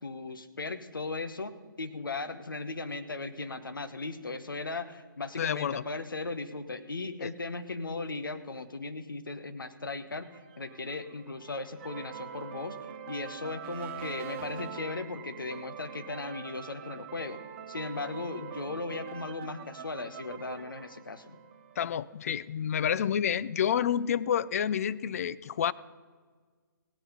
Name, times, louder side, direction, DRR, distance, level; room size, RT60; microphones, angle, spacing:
voice 1, 0.0-1.5 1.8-10.3 10.6-12.8 13.1-17.4 17.7-21.4, left 3 dB, 80° left, 10 dB, 1.1 m, -37 dB
voice 2, 5.4-5.8 7.2-7.3 21.8-25.7, left 9 dB, 45° left, 18 dB, 0.4 m, -29 dB
sound 1, 10.2-22.0, right 7 dB, 35° right, 0.9 m, -44 dB
16.5 x 9.1 x 5.4 m, 1.5 s
figure-of-eight pair, 135°, 11 cm